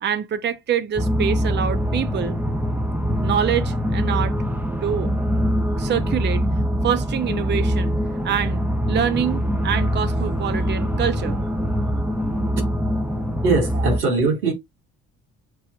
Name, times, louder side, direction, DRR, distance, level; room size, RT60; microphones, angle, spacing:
voice 1, 0.0-2.4 3.1-4.4 4.8-5.1 5.8-6.4 6.8-8.0 8.2-8.6 8.9-11.4, right 8 dB, 25° right, 0.6 m, -25 dB
sound 1, 1.0-14.0, equal, 5° right, 1.0 m, -23 dB
voice 2, 13.4-14.5, right 3 dB, 85° right, 1.4 m, -20 dB
6.9 x 2.8 x 2.3 m
hypercardioid pair, 55°, 45 cm